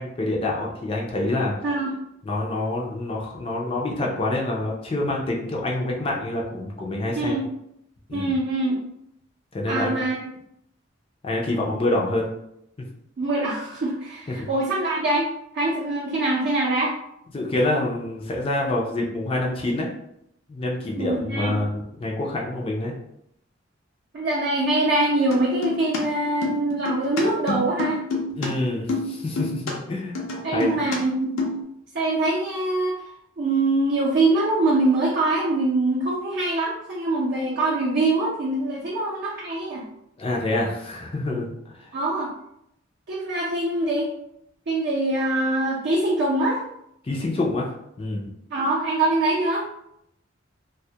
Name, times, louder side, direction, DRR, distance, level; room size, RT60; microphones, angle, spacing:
voice 1, 0.0-1.5 2.2-7.4 8.1-8.3 9.5-10.0 11.2-12.3 14.3-14.5 17.3-19.9 20.5-22.9 28.4-30.2 30.5-30.8 40.2-41.5 41.8-41.9 47.0-47.7 48.0-48.3, left 2 dB, 30° left, -2 dB, 0.4 m, -26 dB
voice 2, 8.1-8.8 9.7-10.2 13.2-15.3 15.5-16.9 21.0-21.5 24.1-28.0 30.4-31.4 31.9-32.9 33.4-39.8 41.9-42.3 43.1-44.1 44.7-46.6 48.5-49.6, right 2 dB, 55° right, -7 dB, 0.5 m, -23 dB
sound 1, 25.3-26.0 26.2-28.5 28.7-29.7 30.1-31.0 31.2-31.6, left 2 dB, 85° left, 0.6 m, -28 dB
2.2 x 2.1 x 2.7 m, 0.77 s
head